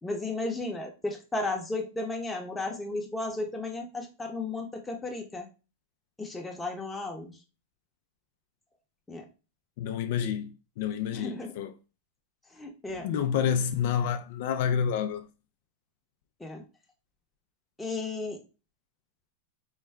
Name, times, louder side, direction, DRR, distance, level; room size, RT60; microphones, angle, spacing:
voice 1, 0.0-5.5 6.2-7.3 9.1-9.3 11.1-11.5 12.5-13.1 16.4-16.6 17.8-18.4, left 2 dB, 5° left, 0.8 m, -34 dB
voice 2, 9.8-11.7 13.0-15.3, left 8 dB, 60° left, 0.3 m, -29 dB
4.5 x 2.2 x 3.2 m
supercardioid pair, 145°, 0 cm